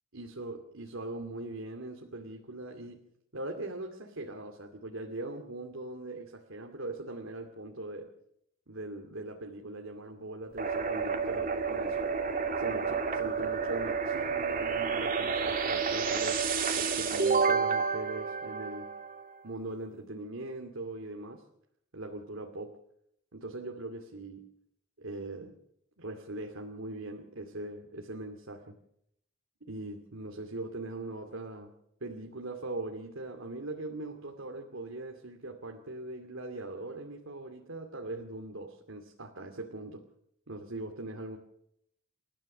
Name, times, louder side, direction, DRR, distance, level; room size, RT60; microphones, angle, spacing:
voice 1, 0.1-3.1 3.3-8.1 8.7-12.1 12.6-18.9 19.4-21.4 21.9-22.8 23.3-24.5 25.0-25.6 26.0-28.7 29.7-31.7 32.0-40.0 40.5-41.4, right 2 dB, 75° right, 3 dB, 2.4 m, -41 dB
sound 1, 10.6-19.2, right 5 dB, 40° right, 2.8 m, -30 dB
29.5 x 14.0 x 6.7 m, 0.77 s
head